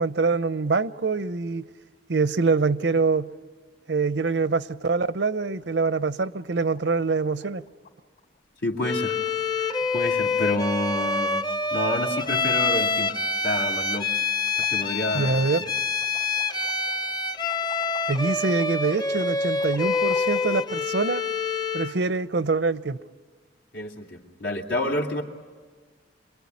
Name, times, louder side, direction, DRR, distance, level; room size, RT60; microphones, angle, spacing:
voice 1, 0.0-1.7 2.1-3.3 3.9-7.6 15.1-15.6 18.1-21.2 21.7-23.0, right 4 dB, 70° right, 0.7 m, -24 dB
sound 1, 5.5-5.9 6.2-6.3 6.5-6.8 7.1-7.9 8.2-8.4 8.7-8.8 9.1-9.6 9.9-10.1 10.4-10.7 11.0-12.9 13.3-14.1 14.4-20.7, left 4 dB, 50° left, 2.6 m, -48 dB
voice 2, 8.6-9.2 9.6-9.7 9.9-11.4 11.7-13.1 13.4-14.1 14.7-15.3 23.7-25.2, left 1 dB, 80° left, 2.9 m, -28 dB
Bowed string instrument, 8.8-22.0, left 4 dB, 25° left, 0.8 m, -26 dB
28.0 x 22.0 x 9.6 m
head